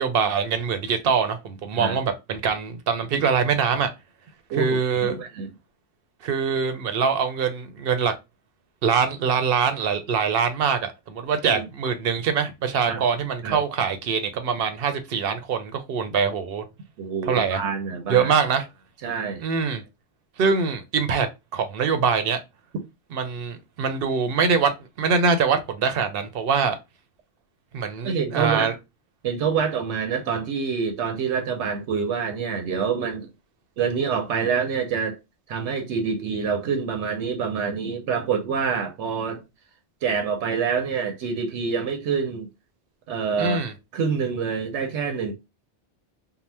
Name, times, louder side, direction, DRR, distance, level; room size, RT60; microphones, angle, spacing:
voice 1, 0.0-3.9 4.6-5.2 6.2-8.1 8.8-16.6 17.3-17.6 18.1-18.7 19.4-19.8 20.4-21.3 21.5-22.4 23.1-24.7 25.0-26.8 27.7-28.7 43.4-43.7, right 6 dB, 65° right, 0.7 m, -23 dB
voice 2, 5.0-5.5 11.4-11.6 12.9-13.0 13.4-13.6 17.0-18.3 19.0-19.4 28.0-28.7 29.2-33.3 33.8-35.2 35.5-39.4 40.0-42.5 43.1-43.6 43.9-45.3, right 6 dB, 90° right, 1.0 m, -26 dB
2.8 x 2.0 x 3.2 m
omnidirectional pair, 1.2 m